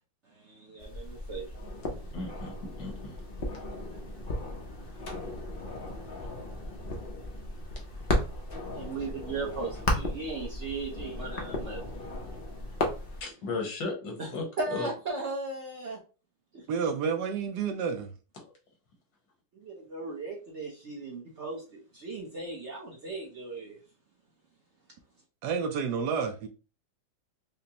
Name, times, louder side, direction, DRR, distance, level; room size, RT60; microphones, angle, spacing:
voice 1, 0.3-2.1 4.8-5.2 8.7-12.0 14.2-14.3 14.6-16.0 16.5-16.7 19.5-23.8, right 3 dB, 55° right, 0.8 m, -37 dB
sound 1, 0.8-13.2, left 1 dB, 60° left, 0.6 m, -35 dB
voice 2, 2.1-3.2 13.2-14.4 14.7-14.9 18.4-18.5, left 3 dB, 80° left, 1.9 m, -35 dB
voice 3, 16.7-18.1 25.4-26.5, right 6 dB, 75° right, 1.1 m, -30 dB
5.2 x 2.1 x 2.8 m
omnidirectional pair, 2.0 m